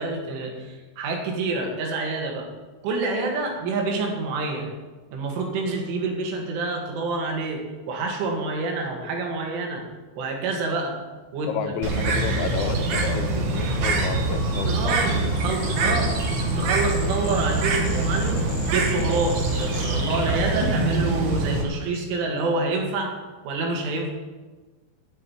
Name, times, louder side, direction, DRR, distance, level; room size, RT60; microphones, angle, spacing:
voice 1, 0.0-2.5 2.8-4.7 5.1-7.6 7.9-9.8 10.2-11.0 11.3-11.5 13.8-13.9 14.7-16.1 16.6-18.4 18.7-23.1 23.4-24.1, right 3 dB, 90° right, 1 dB, 4.5 m, -27 dB
voice 2, 11.5-15.3 15.6-16.1, left 7 dB, 80° left, 6 dB, 3.3 m, -31 dB
Bird, 11.8-21.6, right 3 dB, 65° right, 2.0 m, -24 dB
sound 1, 15.4-21.2, left 2 dB, 35° left, 2.5 m, -37 dB
9.3 x 8.4 x 9.5 m, 1.3 s
omnidirectional pair, 5.4 m